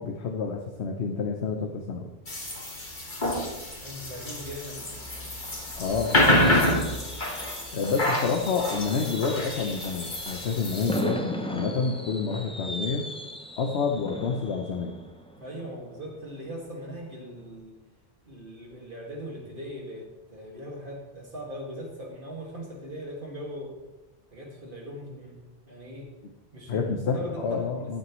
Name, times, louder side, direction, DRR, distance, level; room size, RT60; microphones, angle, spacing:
voice 1, 0.0-2.1 5.8-6.5 7.7-13.1 13.6-15.0 26.7-28.0, left 5 dB, 85° left, 3 dB, 1.1 m, -29 dB
sound 1, 2.3-11.0, left 1 dB, 50° left, 2.1 m, -28 dB
voice 2, 3.8-5.0 7.7-8.0 15.4-17.8 18.3-23.7 24.3-25.4 25.7-26.1 26.5-27.9, equal, 55° right, -1 dB, 2.2 m, -39 dB
Fireworks, 4.8-16.5 16.8-17.1 17.4-17.5, equal, 5° left, 0.6 m, -38 dB
13.0 x 8.9 x 3.1 m, 1.1 s
omnidirectional pair, 1.1 m